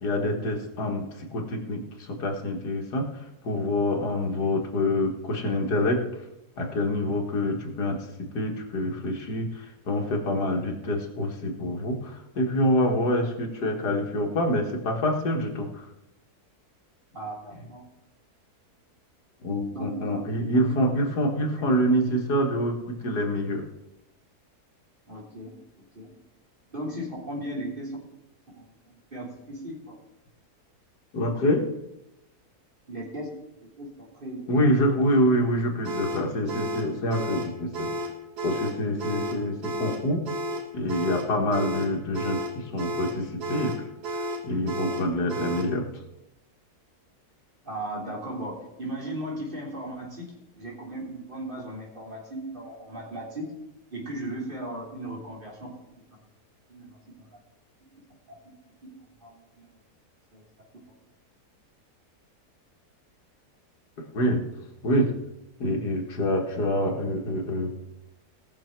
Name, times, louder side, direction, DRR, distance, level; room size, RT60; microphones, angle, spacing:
voice 1, 0.0-3.1 3.4-6.0 6.6-15.8 19.4-23.6 31.1-31.7 34.5-37.9 38.4-40.2 40.7-43.8 44.1-45.9 64.1-64.4 64.8-65.1 65.6-67.7, left 1 dB, 80° left, 2 dB, 2.3 m, -26 dB
voice 2, 17.1-17.9 19.7-20.1 20.7-20.9 25.1-25.5 26.0-26.1 26.7-28.0 28.6-30.0 32.9-33.3 33.6-35.0 47.6-53.5 53.9-55.7 56.7-57.0 58.3-58.6 59.2-59.7 60.3-60.4, right 1 dB, 30° right, -3 dB, 3.5 m, -37 dB
sound 1, 35.8-45.8, equal, 80° right, 1.9 m, -32 dB
18.5 x 6.7 x 4.6 m, 0.90 s
omnidirectional pair, 1.7 m